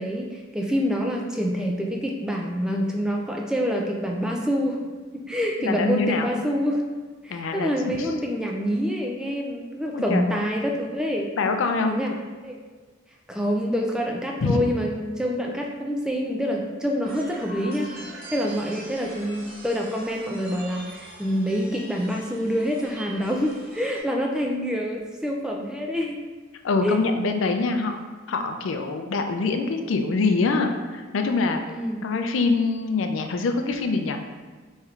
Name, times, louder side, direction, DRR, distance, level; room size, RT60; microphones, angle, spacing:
voice 1, 0.0-4.8 5.1-6.8 7.2-11.3 11.8-12.1 12.4-12.6 13.3-17.9 18.3-26.2 26.8-27.0 31.7-32.0, equal, 5° right, 0 dB, 0.3 m, -26 dB
voice 2, 5.6-6.3 7.3-7.7 8.0-8.1 9.9-10.3 11.4-12.0 14.4-14.6 26.6-28.0 28.3-31.6 32.0-34.2, left 3 dB, 75° left, 5 dB, 0.4 m, -24 dB
sound 1, 17.0-24.0, right 1 dB, 50° right, 0.7 m, -43 dB
4.5 x 3.2 x 2.4 m, 1.4 s
head